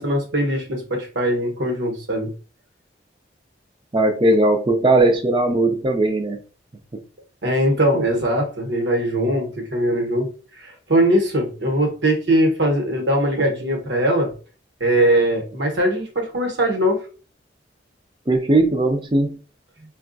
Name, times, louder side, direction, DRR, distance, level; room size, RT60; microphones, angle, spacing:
voice 1, 0.0-2.3 7.4-10.3 10.6-14.3 14.8-17.0, right 1 dB, 75° right, 2 dB, 1.0 m, -21 dB
voice 2, 3.9-6.4 6.9-7.0 18.3-19.4, right 2 dB, 25° right, 6 dB, 0.5 m, -18 dB
4.7 x 2.3 x 2.5 m, 0.37 s
head